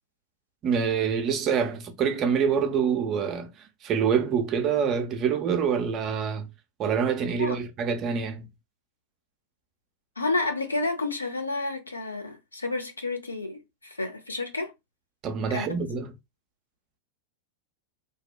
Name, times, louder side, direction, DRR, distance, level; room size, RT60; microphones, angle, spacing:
voice 1, 0.6-3.5 3.8-6.5 6.8-8.5 15.2-16.1, right 7 dB, 35° right, 0.4 m, -26 dB
voice 2, 10.2-14.7 15.5-15.8, left 3 dB, 80° left, 0.5 m, -30 dB
2.6 x 2.1 x 2.3 m
figure-of-eight pair, 90°, 0 cm